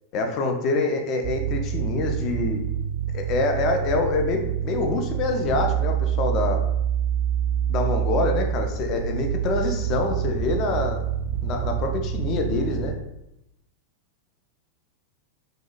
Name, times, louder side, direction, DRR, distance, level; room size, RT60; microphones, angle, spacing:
voice 1, 0.1-2.6 3.1-6.6 7.7-11.0 11.4-13.0, left 3 dB, 35° left, 3 dB, 0.4 m, -26 dB
sound 1, 1.2-12.9, right 9 dB, 55° right, 0.4 m, -27 dB
2.7 x 2.1 x 2.3 m, 0.86 s
figure-of-eight pair, 90°, 0 cm